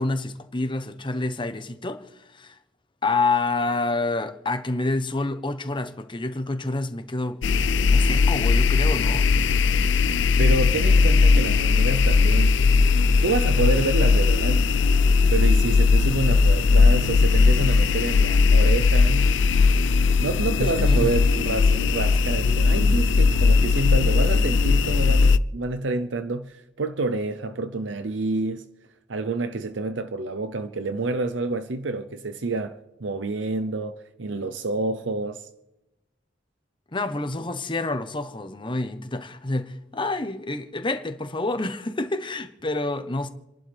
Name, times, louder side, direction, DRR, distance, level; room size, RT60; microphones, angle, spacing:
voice 1, 0.0-2.0 2.3-2.6 3.0-7.4 7.9-9.2 20.6-21.2 36.9-43.3, left 2 dB, 25° left, 1.0 m, -28 dB
sound 1, 7.4-25.4, left 4 dB, 70° left, 0.4 m, -19 dB
voice 2, 10.4-12.6 13.2-14.7 15.3-19.3 20.2-28.6 29.1-35.4, right 3 dB, 75° right, 0.7 m, -28 dB
28.5 x 11.5 x 3.5 m
head